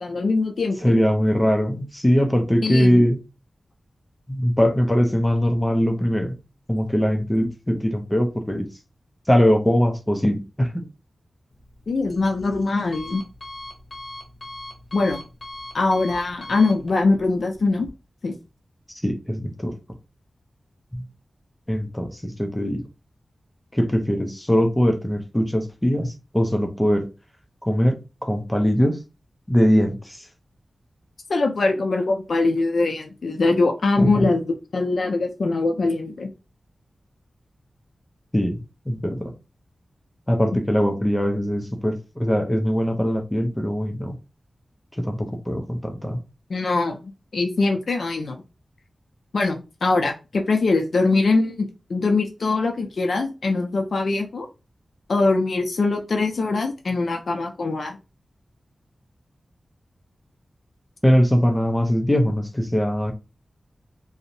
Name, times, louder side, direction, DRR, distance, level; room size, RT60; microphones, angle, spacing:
voice 1, 0.0-1.0 2.6-3.0 11.9-13.2 14.9-15.2 15.7-17.9 18.2-18.3 31.3-36.3 46.5-47.0 47.3-48.4 49.3-54.5 55.1-58.0, left 3 dB, 70° left, 0.4 m, -22 dB
voice 2, 0.8-3.2 4.3-6.4 6.7-8.7 9.3-10.9 19.0-19.7 20.9-21.0 21.7-22.8 23.7-27.1 27.6-29.0 29.5-30.2 34.0-34.3 38.3-38.6 38.9-39.3 40.3-44.2 45.0-46.2 61.0-63.1, equal, 10° left, 0.5 m, -21 dB
Alarm, 11.5-17.9, left 2 dB, 45° left, 0.8 m, -41 dB
2.6 x 2.0 x 2.6 m
wide cardioid pair, 85°, 0 cm